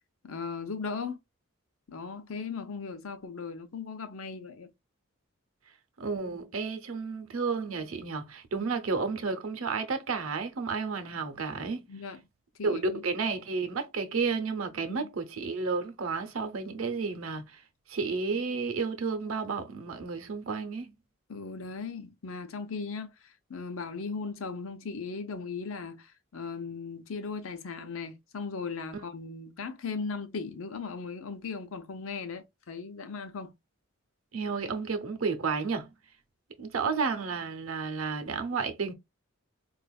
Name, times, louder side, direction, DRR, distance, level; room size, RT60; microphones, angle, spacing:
voice 1, 0.3-1.2 1.9-4.7 8.6-8.7 11.9-12.2 12.6-13.0 14.9-15.1 21.3-33.5, left 4 dB, 75° left, 0.7 m, -38 dB
voice 2, 6.0-11.9 12.6-17.6 17.9-20.9 34.3-35.9 36.6-38.9, right 4 dB, 80° right, 0.7 m, -32 dB
4.2 x 2.5 x 2.3 m
head